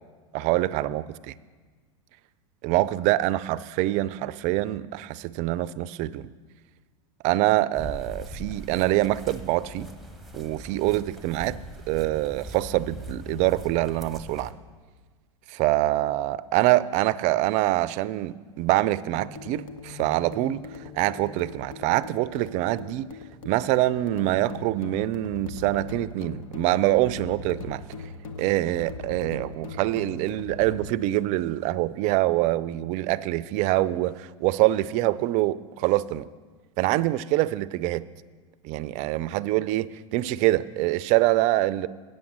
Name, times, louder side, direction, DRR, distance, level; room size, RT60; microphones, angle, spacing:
voice 1, 0.3-1.3 2.6-6.3 7.2-9.9 10.3-11.6 11.9-14.5 15.5-20.7 20.9-23.1 23.5-27.8 28.4-36.3 36.8-38.0 38.6-41.9, right 16 dB, 45° right, 0.4 m, -25 dB
sound 1, 7.7-14.5, right 1 dB, ahead, 0.9 m, -41 dB
sound 2, 19.1-30.9, left 3 dB, 80° left, 1.0 m, -40 dB
8.6 x 7.2 x 7.3 m
hypercardioid pair, 95°, 17 cm